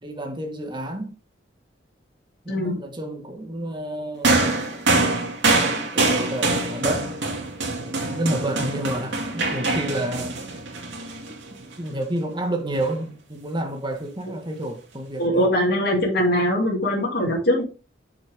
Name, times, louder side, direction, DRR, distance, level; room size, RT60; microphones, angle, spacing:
voice 1, 0.0-1.2 2.4-4.7 5.7-7.1 7.8-10.4 11.8-15.5, right 1 dB, 25° right, 1.8 m, -30 dB
voice 2, 2.5-2.8 15.2-17.6, equal, 60° left, 2.7 m, -21 dB
sound 1, 4.2-11.7 12.7-12.9, right 2 dB, 85° right, 2.5 m, -24 dB
7.0 x 6.6 x 3.6 m
head